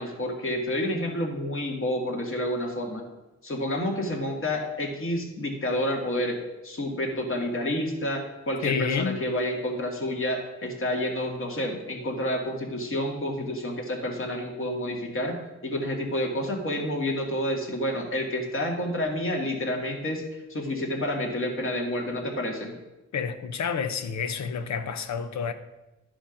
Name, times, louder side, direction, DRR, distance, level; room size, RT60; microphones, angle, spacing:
voice 1, 0.0-3.1 3.4-22.7, left 1 dB, 45° left, 2.1 m, -29 dB
voice 2, 8.6-9.2 23.1-25.5, left 6 dB, 65° left, 0.9 m, -29 dB
11.5 x 5.0 x 5.2 m
cardioid pair, 80°, 30 cm